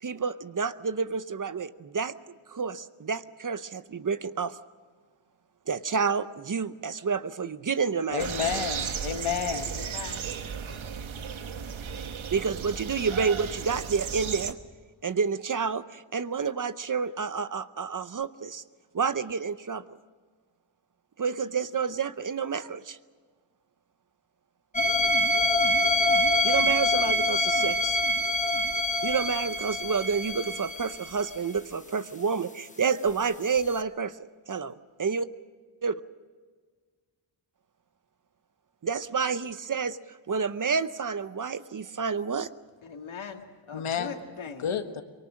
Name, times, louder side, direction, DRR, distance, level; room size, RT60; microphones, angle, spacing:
voice 1, 0.0-2.1 2.5-4.6 5.7-8.5 12.3-14.6 15.0-18.6 18.9-19.8 21.2-23.0 26.4-28.0 29.0-34.7 35.0-35.3 35.8-35.9 38.8-42.5, right 5 dB, 40° right, 13 dB, 0.7 m, -29 dB
voice 2, 8.1-9.7 43.7-44.1 44.6-45.0, left 8 dB, 90° left, 7 dB, 1.6 m, -30 dB
sound 1, 8.2-14.5, right 7 dB, 75° right, 1.3 m, -35 dB
voice 3, 9.7-10.3 42.8-44.7, left 5 dB, 75° left, 4 dB, 2.3 m, -41 dB
sound 2, 24.7-31.3 33.7-33.8, left 1 dB, 15° left, 1.1 m, -25 dB
24.0 x 23.5 x 6.4 m, 1.5 s
wide cardioid pair, 145°, 48 cm